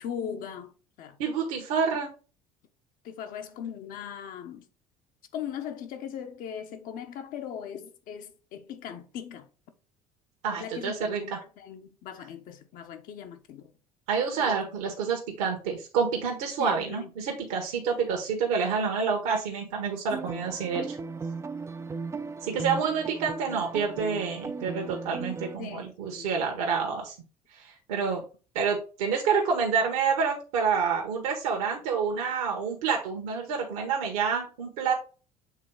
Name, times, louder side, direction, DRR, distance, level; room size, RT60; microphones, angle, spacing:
voice 1, 0.0-1.2 3.0-4.7 5.3-9.5 10.5-13.7 14.4-14.8 16.6-17.1 25.6-26.4, left 8 dB, 50° left, 1.1 m, -39 dB
voice 2, 1.2-2.1 10.4-11.2 14.1-21.0 22.4-27.1 27.5-28.2 28.5-34.9, right 6 dB, 65° right, 1.4 m, -28 dB
sound 1, 20.1-25.6, right 4 dB, 15° right, 0.5 m, -36 dB
7.3 x 3.8 x 3.8 m
figure-of-eight pair, 65°, 19 cm